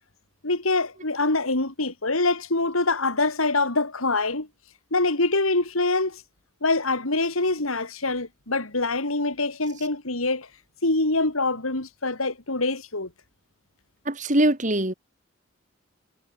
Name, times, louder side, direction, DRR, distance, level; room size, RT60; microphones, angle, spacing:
voice 1, 0.4-4.5 4.9-6.2 6.6-10.5 10.8-13.1, left 2 dB, 85° left, 3.6 m, -24 dB
voice 2, 14.1-14.9, right 1 dB, 35° right, 3.1 m, -22 dB
head